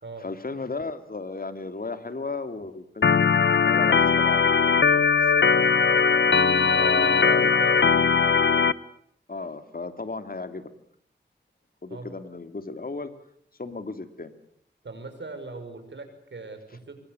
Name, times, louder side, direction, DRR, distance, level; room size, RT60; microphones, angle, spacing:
voice 1, 0.2-4.5 4.9-5.7 5.9-6.0 6.8-7.6 9.3-10.7 11.8-13.1 13.6-14.3, left 3 dB, 50° left, 9 dB, 2.7 m, -35 dB
Organ, 3.0-8.7, left 5 dB, 75° left, 1.0 m, -20 dB
voice 2, 6.6-8.1 11.9-12.1 14.8-17.0, right 3 dB, 75° right, 7 dB, 5.7 m, -40 dB
25.5 x 22.5 x 8.0 m, 0.65 s
wide cardioid pair, 65°, 19 cm